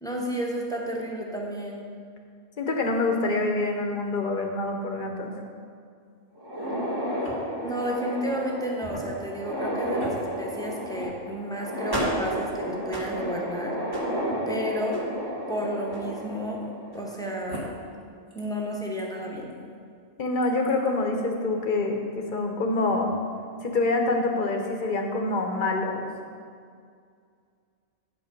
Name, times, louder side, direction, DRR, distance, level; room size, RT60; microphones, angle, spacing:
voice 1, 0.0-1.9 7.6-13.8 14.5-15.0 15.5-16.6 16.9-17.7 18.3-19.6, equal, 5° left, -2 dB, 1.1 m, -32 dB
voice 2, 2.6-5.3 20.2-23.1 23.6-26.1, left 2 dB, 45° left, 3 dB, 1.1 m, -26 dB
sound 1, 6.4-17.1 17.5-17.6 18.4-18.5 19.0-19.1 20.4-20.7, equal, 20° right, 1.6 m, -32 dB
8.5 x 7.1 x 5.3 m, 2.2 s
omnidirectional pair, 1.3 m